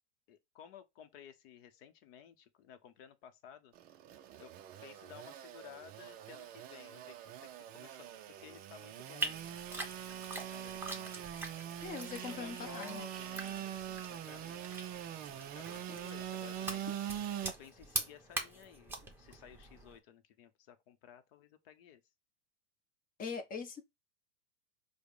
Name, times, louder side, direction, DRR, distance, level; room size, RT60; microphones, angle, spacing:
voice 1, 0.3-3.7 4.4-4.5 4.8-7.5 7.7-11.4 12.1-14.8 15.5-17.0 17.4-22.0, left 9 dB, 50° left, 0.9 m, -55 dB
Engine / Sawing, 3.7-17.5, right 10 dB, 25° right, 0.4 m, -43 dB
sound 1, 9.2-20.0, right 2 dB, 5° right, 0.9 m, -44 dB
voice 2, 11.8-13.0 15.9-16.0 23.2-23.8, left 5 dB, 25° left, 0.9 m, -42 dB
4.8 x 2.2 x 4.8 m
hypercardioid pair, 115°, 37 cm